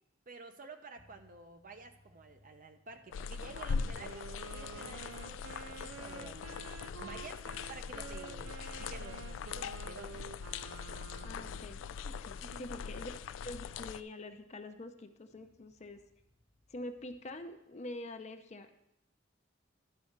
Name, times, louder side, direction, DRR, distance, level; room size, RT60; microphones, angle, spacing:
voice 1, 0.3-7.4 7.7-10.2 12.4-12.7, right 3 dB, 45° right, 7 dB, 0.8 m, -51 dB
sound 1, 1.0-17.7, left 1 dB, 60° left, 1.0 m, -69 dB
sound 2, 3.1-14.0, left 6 dB, 90° left, 0.3 m, -41 dB
Wind instrument woodwind instrument, 3.5-11.8, right 7 dB, 80° right, 0.3 m, -50 dB
voice 2, 11.2-13.1 13.4-16.0 16.7-18.7, left 2 dB, 35° left, 7 dB, 0.6 m, -45 dB
12.0 x 4.2 x 6.5 m, 0.84 s
head